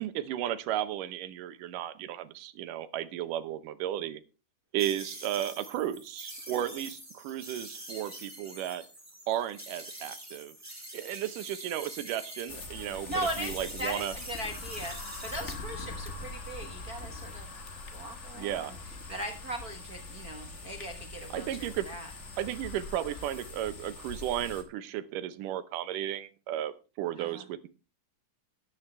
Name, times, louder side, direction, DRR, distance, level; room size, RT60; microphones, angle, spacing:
voice 1, 0.0-4.2 4.7-8.8 9.3-10.6 10.9-14.1 18.4-18.7 21.3-21.9 22.4-27.7, right 12 dB, 80° right, 13 dB, 2.5 m, -34 dB
sound 1, 4.8-12.6 12.9-15.5, right 1 dB, 5° right, 3.4 m, -45 dB
sound 2, 12.5-24.6, left 3 dB, 45° left, 0.9 m, -43 dB
voice 2, 13.1-17.5 17.9-18.7 19.1-22.1 27.2-27.4, right 1 dB, 60° right, 4 dB, 0.9 m, -39 dB
sound 3, 14.1-23.5, left 3 dB, 65° left, 3.6 m, -50 dB
13.5 x 11.0 x 3.3 m, 0.31 s
omnidirectional pair, 3.7 m